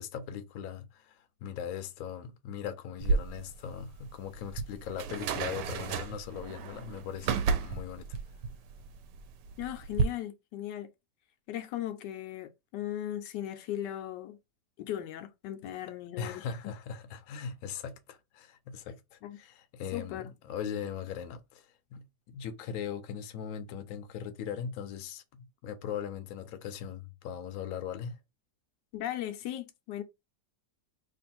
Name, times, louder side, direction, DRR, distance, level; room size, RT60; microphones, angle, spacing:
voice 1, 0.0-8.2 16.2-28.2, left 8 dB, 70° left, 0.9 m, -40 dB
sound 1, 3.0-10.0, right 5 dB, 80° right, 1.2 m, -33 dB
voice 2, 9.6-10.9 11.5-14.4 14.8-16.5 19.2-19.4 19.9-20.3 28.9-30.0, left 12 dB, 85° left, 1.2 m, -37 dB
3.0 x 2.5 x 4.2 m
omnidirectional pair, 1.8 m